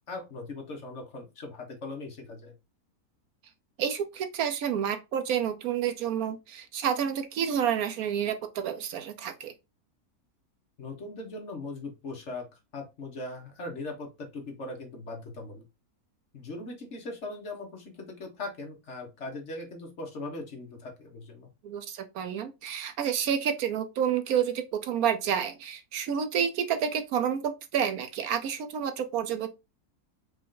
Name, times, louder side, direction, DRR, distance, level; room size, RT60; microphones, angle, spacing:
voice 1, 0.0-2.5 10.8-12.5 12.7-15.7 16.3-21.5, left 2 dB, 50° left, 1.3 m, -39 dB
voice 2, 3.8-9.5 21.6-29.5, right 8 dB, 70° right, 1.1 m, -29 dB
5.0 x 2.5 x 3.7 m
omnidirectional pair, 1.7 m